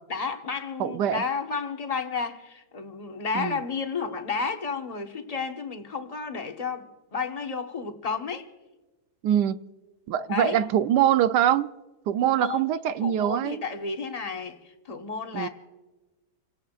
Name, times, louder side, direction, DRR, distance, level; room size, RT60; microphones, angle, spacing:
voice 1, 0.1-8.4 10.3-10.6 12.2-12.6 13.0-15.5, left 5 dB, 25° left, 1.2 m, -32 dB
voice 2, 0.8-1.2 3.3-3.6 9.2-9.6 10.1-11.7 12.1-13.6 15.3-15.5, right 10 dB, 85° right, 1.3 m, -23 dB
29.0 x 18.0 x 2.4 m
omnidirectional pair, 1.7 m